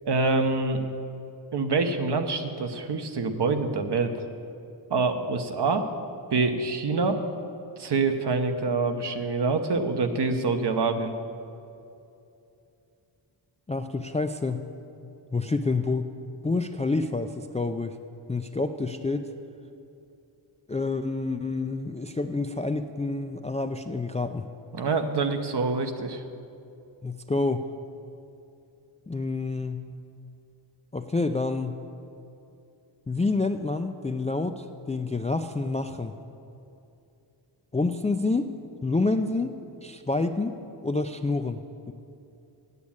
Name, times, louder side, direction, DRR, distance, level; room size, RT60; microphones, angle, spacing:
voice 1, 0.0-0.8 1.5-4.2 4.9-5.9 6.3-7.2 7.8-11.1 24.7-26.2, right 3 dB, 55° right, 7 dB, 1.0 m, -26 dB
voice 2, 13.7-14.6 15.3-16.1 16.4-17.9 18.3-19.2 20.7-24.4 27.0-27.7 29.1-29.9 30.9-31.8 33.1-36.1 37.7-38.5 38.8-39.5 39.8-40.6 40.8-41.6 41.9-42.0, left 3 dB, 15° left, 7 dB, 0.3 m, -28 dB
8.4 x 8.1 x 8.6 m, 2.7 s
cardioid pair, 75°, 49 cm